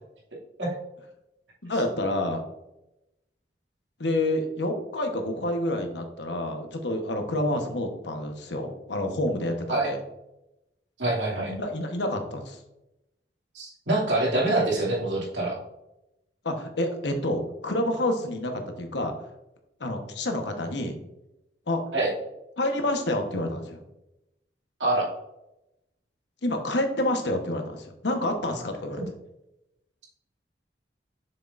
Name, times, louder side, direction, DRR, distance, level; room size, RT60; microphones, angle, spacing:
voice 1, 1.6-2.4 4.0-10.0 11.5-12.6 16.4-19.1 19.8-21.0 21.7-21.8 22.6-23.8 26.4-29.1, left 1 dB, 75° left, 5 dB, 1.2 m, -28 dB
voice 2, 11.0-11.5 13.5-15.6 21.9-22.1 24.8-25.1, right 2 dB, 85° right, -4 dB, 2.5 m, -25 dB
7.2 x 6.6 x 2.6 m, 0.90 s
head